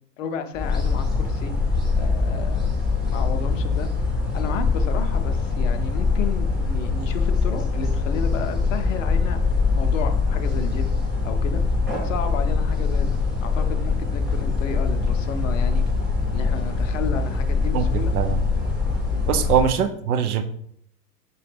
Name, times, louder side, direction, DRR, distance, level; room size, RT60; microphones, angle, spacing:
voice 1, 0.2-2.7 3.0-9.4 9.7-10.9 11.2-11.6 11.9-15.8 16.3-18.1 18.8-19.5, left 5 dB, 50° left, 8 dB, 0.6 m, -33 dB
sound 1, 0.5-19.7, left 4 dB, ahead, 0.7 m, -23 dB
voice 2, 19.3-20.4, right 8 dB, 65° right, 9 dB, 0.6 m, -22 dB
5.6 x 2.2 x 3.3 m, 0.69 s
figure-of-eight pair, 100°, 49 cm